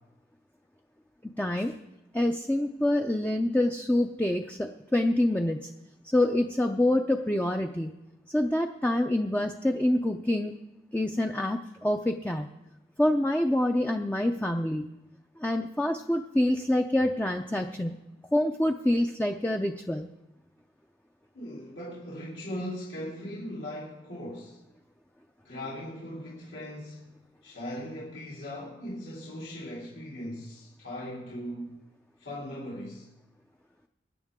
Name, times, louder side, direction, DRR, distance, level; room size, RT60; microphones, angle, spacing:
voice 1, 1.4-1.8 2.1-5.7 6.1-7.9 8.3-10.5 10.9-12.5 13.0-14.8 15.4-18.0 18.3-20.1, left 1 dB, 10° left, 4 dB, 0.5 m, -26 dB
voice 2, 21.3-24.6 25.4-27.2 27.4-31.8 32.2-33.1, equal, 75° left, -7 dB, 3.5 m, -39 dB
24.0 x 10.0 x 3.7 m, 0.95 s
head